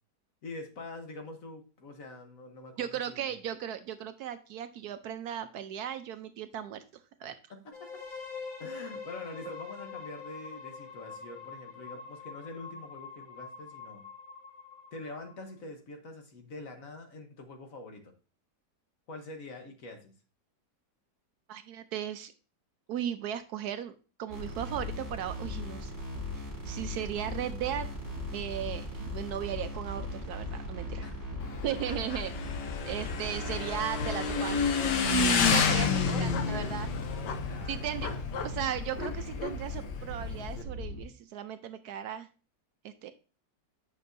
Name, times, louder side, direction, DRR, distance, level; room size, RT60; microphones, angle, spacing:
voice 1, 0.4-3.3 7.5-7.9 8.6-14.1 14.9-18.1 19.1-20.1 31.0-31.3 31.9-32.2 35.7-38.5, left 2 dB, 55° left, 5 dB, 1.4 m, -45 dB
voice 2, 2.8-6.8 7.2-7.4 21.5-22.3 22.9-25.9 26.3-27.9 28.3-31.0 31.6-32.3 32.9-34.7 35.4-36.9 37.7-38.1 38.4-42.3 42.8-43.1, right 10 dB, 70° right, 10 dB, 1.0 m, -36 dB
sound 1, 7.7-15.5, left 5 dB, 30° left, 3.8 m, -45 dB
sound 2, 24.3-41.0, left 1 dB, 10° left, 3.1 m, -38 dB
Motorcycle / Engine, 31.4-40.6, left 5 dB, 80° left, 1.4 m, -30 dB
8.4 x 6.1 x 2.6 m, 0.35 s
omnidirectional pair, 1.8 m